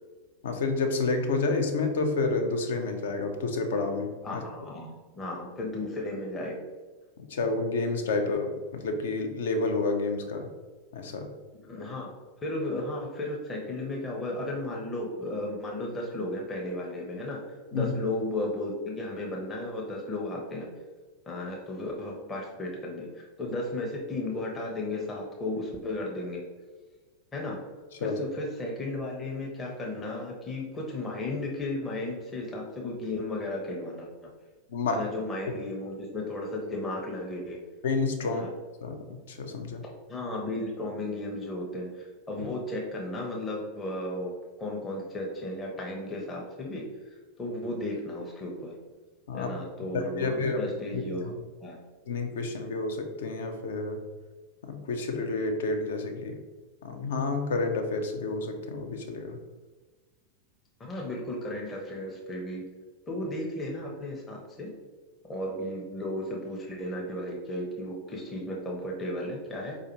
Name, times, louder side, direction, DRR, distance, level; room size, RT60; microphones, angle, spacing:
voice 1, 0.4-4.4 7.3-10.5 10.9-11.3 17.7-17.9 28.0-28.2 34.7-35.1 37.8-38.4 38.8-39.8 49.3-49.5 49.9-50.6 50.9-51.3 52.1-54.0 54.6-56.4 56.8-59.4, left 3 dB, 60° left, 6 dB, 0.5 m, -29 dB
voice 2, 4.2-6.6 11.7-12.1 12.4-17.4 17.7-20.7 21.3-26.4 27.3-27.6 28.0-34.3 34.9-37.6 38.2-38.5 40.1-46.8 47.4-48.7 49.3-51.3 51.6-51.8 60.8-62.6 63.1-64.7 65.3-69.8, left 1 dB, 20° left, -2 dB, 0.7 m, -34 dB
4.6 x 2.4 x 2.9 m, 1.3 s
figure-of-eight pair, 90°, 0 cm